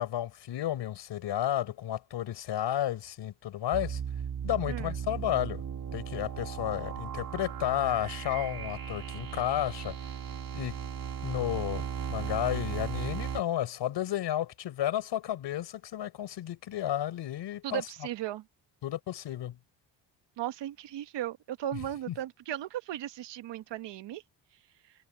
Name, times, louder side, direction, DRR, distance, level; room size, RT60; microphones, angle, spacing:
voice 1, 0.0-4.0 4.4-5.6 5.9-10.0 10.5-10.8 11.2-11.8 12.1-17.8 18.8-19.6, left 12 dB, 65° left, 4.3 m, -32 dB
sound 1, 3.7-13.4, right 8 dB, 50° right, 3.2 m, -36 dB
voice 2, 17.6-18.4 20.4-24.2, right 12 dB, 65° right, 1.2 m, -36 dB
cardioid pair, 105°, 45 cm